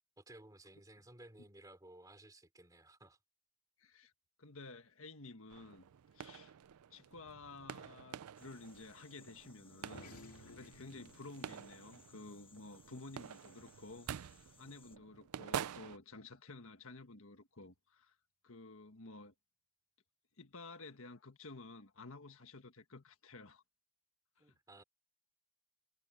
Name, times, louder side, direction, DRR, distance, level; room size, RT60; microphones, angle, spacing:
voice 1, 0.2-3.2 24.4-24.8, right 1 dB, 15° right, 3.3 m, -57 dB
voice 2, 3.8-4.1 4.4-5.8 6.1-6.5 6.9-18.1 18.4-19.3 20.4-23.6 24.4-24.5, left 3 dB, 65° left, 1.6 m, -53 dB
sound 1, 5.5-16.0, right 8 dB, 85° right, 0.4 m, -48 dB
sound 2, 8.4-15.0, left 7 dB, 25° left, 1.4 m, -66 dB
sound 3, 9.8-14.6, left 2 dB, 85° left, 2.3 m, -60 dB
head